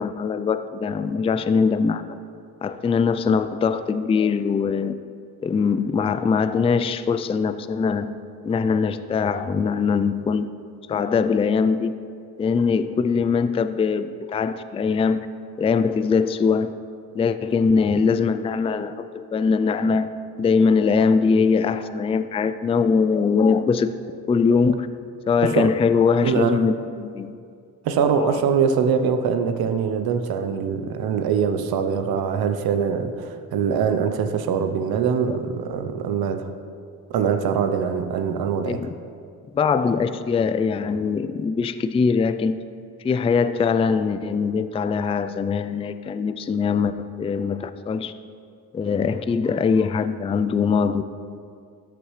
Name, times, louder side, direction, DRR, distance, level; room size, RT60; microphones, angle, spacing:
voice 1, 0.0-2.0 2.6-5.0 5.4-8.1 8.4-10.5 10.9-11.9 12.4-15.3 15.6-16.7 17.1-20.1 20.4-23.9 24.3-24.9 25.3-27.3 28.2-28.4 35.3-35.4 38.6-38.9 39.5-42.6 43.0-48.1 48.7-51.0, left 5 dB, 15° left, 12 dB, 0.3 m, -22 dB
voice 2, 26.2-26.6 27.8-36.5 37.1-38.9, right 6 dB, 75° right, 8 dB, 0.8 m, -23 dB
13.5 x 6.8 x 3.2 m, 2.3 s
cardioid pair, 70°, 37 cm